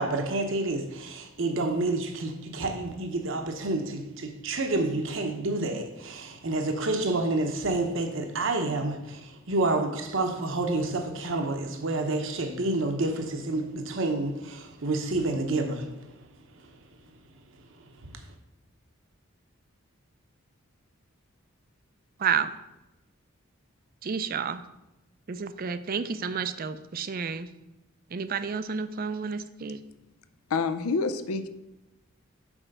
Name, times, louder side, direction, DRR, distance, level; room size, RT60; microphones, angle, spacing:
voice 1, 0.0-15.9, right 2 dB, 60° right, 0.8 m, -29 dB
voice 2, 24.0-24.6 25.3-27.5 28.1-29.8, right 6 dB, 45° right, 0.4 m, -30 dB
voice 3, 30.5-31.5, left 4 dB, 90° left, 0.5 m, -27 dB
6.2 x 4.4 x 6.5 m
head